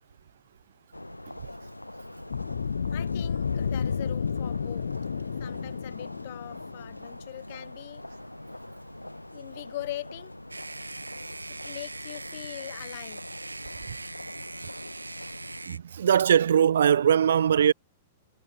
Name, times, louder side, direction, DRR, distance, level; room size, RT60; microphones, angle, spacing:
sound 1, 0.9-15.7, left 1 dB, 85° left, 2.6 m, -44 dB
sound 2, 2.3-7.2, left 6 dB, 70° left, 0.9 m, -31 dB
voice 1, 2.9-4.9 5.4-8.0 9.3-10.3 11.5-13.3, left 15 dB, 50° left, 2.6 m, -41 dB
sound 3, 10.5-15.8, right 3 dB, 80° right, 1.6 m, -41 dB
voice 2, 15.7-17.7, right 8 dB, 60° right, 0.8 m, -21 dB
figure-of-eight pair, 100°, 0 cm